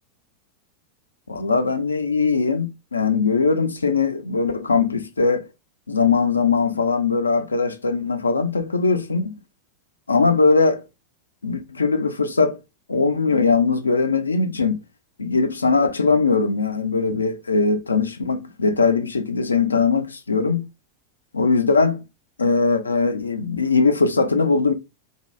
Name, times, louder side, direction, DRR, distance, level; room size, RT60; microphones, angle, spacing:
voice 1, 1.3-5.5 5.9-9.3 10.1-10.8 11.4-12.6 12.9-14.8 15.2-20.7 21.3-22.0 22.4-24.7, left 4 dB, 75° left, 0.4 m, -20 dB
2.7 x 2.2 x 3.2 m
figure-of-eight pair, 90°, 0 cm